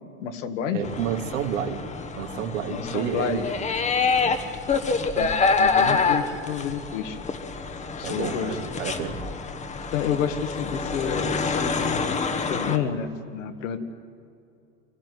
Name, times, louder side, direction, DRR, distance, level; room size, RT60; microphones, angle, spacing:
voice 1, 0.2-0.9 2.7-3.4 5.2-7.2 8.0-8.6 9.9-12.0 12.4-13.8, left 7 dB, 70° left, 7 dB, 2.0 m, -29 dB
voice 2, 0.7-1.8 2.2-3.5 4.2-4.4 8.0-9.2, right 8 dB, 75° right, 3 dB, 2.6 m, -30 dB
sound 1, 0.8-12.8, left 4 dB, 15° left, 1.2 m, -27 dB
24.5 x 15.5 x 9.5 m, 2.6 s
hypercardioid pair, 120°, 39 cm